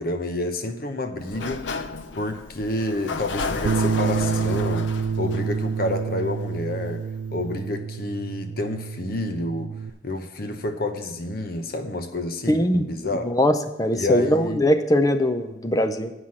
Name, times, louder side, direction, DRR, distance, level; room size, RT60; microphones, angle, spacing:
voice 1, 0.0-1.7 2.2-4.9 5.2-7.0 7.3-9.7 10.0-13.3 13.9-14.6, left 2 dB, 55° left, 7 dB, 0.8 m, -29 dB
Sliding door, 1.2-6.9, left 4 dB, 90° left, 0.6 m, -33 dB
Bass guitar, 3.7-9.9, right 6 dB, 60° right, 0.4 m, -28 dB
voice 2, 12.5-12.9 13.2-16.1, left 1 dB, 20° left, 8 dB, 0.6 m, -21 dB
8.1 x 5.7 x 7.4 m, 0.91 s
head